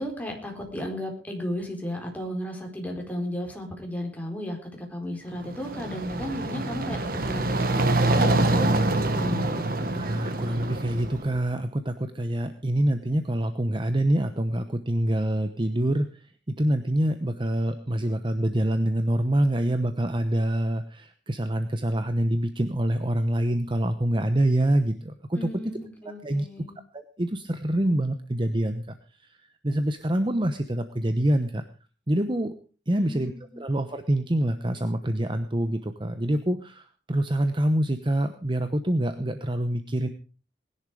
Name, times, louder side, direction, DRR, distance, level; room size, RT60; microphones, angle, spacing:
voice 1, 0.0-8.8 9.0-9.6 25.3-26.8 33.0-33.6, equal, 10° left, 1 dB, 4.4 m, -34 dB
sound 1, 5.4-11.4, right 2 dB, 55° right, 1.8 m, -25 dB
voice 2, 9.9-25.5 26.2-26.5 26.9-28.9 29.6-31.6 32.1-32.5 32.9-40.1, right 1 dB, 30° right, 9 dB, 1.0 m, -26 dB
20.0 x 11.0 x 5.0 m, 0.37 s
head